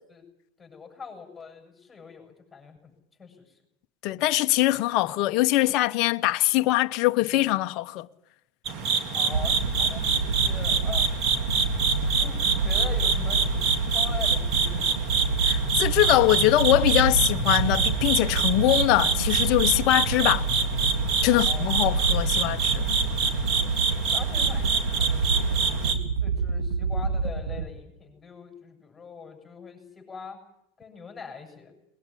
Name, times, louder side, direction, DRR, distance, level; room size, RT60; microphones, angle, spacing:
voice 1, 0.6-2.9 3.2-3.6 9.1-11.3 12.2-13.5 13.8-15.0 21.3-21.6 23.2-23.8 24.1-30.4 30.8-31.7, left 5 dB, 15° left, 7.7 m, -42 dB
voice 2, 4.0-8.1 15.4-20.5 21.2-22.9, left 16 dB, 50° left, 1.0 m, -23 dB
sound 1, 8.7-26.0, right 5 dB, 45° right, 3.3 m, -26 dB
sound 2, 9.3-27.7, right 4 dB, 85° right, 1.7 m, -28 dB
21.5 x 20.5 x 9.9 m
hypercardioid pair, 90°, 0 cm